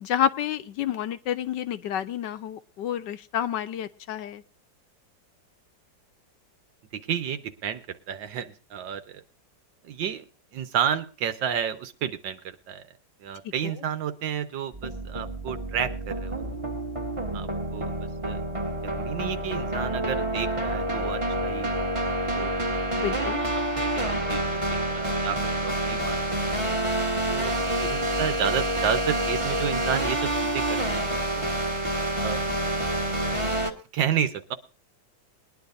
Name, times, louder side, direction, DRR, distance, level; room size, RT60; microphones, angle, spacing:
voice 1, 0.0-4.4 13.4-13.7 22.9-23.4, left 10 dB, 75° left, 10 dB, 1.4 m, -29 dB
voice 2, 6.9-9.2 9.8-10.2 10.5-12.8 13.2-16.4 17.3-18.4 18.8-22.0 22.3-22.5 23.2-23.3 23.8-26.2 27.3-31.5 32.2-32.4 33.9-34.6, right 8 dB, 85° right, 10 dB, 1.7 m, -31 dB
sound 1, 14.7-33.7, right 1 dB, 20° right, 1.3 m, -28 dB
21.0 x 10.5 x 2.6 m, 0.35 s
omnidirectional pair, 2.0 m